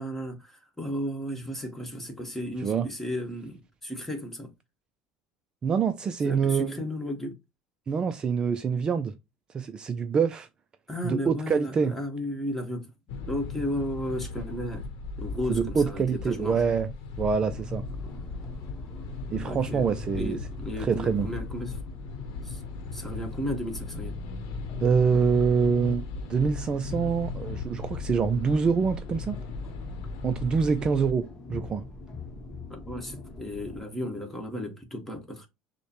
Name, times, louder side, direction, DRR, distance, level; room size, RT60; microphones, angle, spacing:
voice 1, 0.0-4.5 6.2-7.4 10.9-12.9 13.3-14.9 15.2-16.6 19.4-19.9 20.2-21.8 22.4-22.6 22.9-24.2 32.7-35.5, equal, 10° left, 1.3 m, -34 dB
voice 2, 5.6-6.8 7.9-9.1 9.5-10.5 11.0-12.0 15.5-16.9 17.2-17.8 19.3-20.4 20.8-21.3 24.8-26.0 26.3-29.4 30.2-31.8, right 6 dB, 30° right, 0.4 m, -25 dB
sound 1, 13.1-31.1, left 4 dB, 75° left, 0.8 m, -37 dB
sound 2, 17.2-33.8, left 2 dB, 25° left, 1.0 m, -43 dB
6.3 x 2.2 x 2.9 m
supercardioid pair, 95°, 3 cm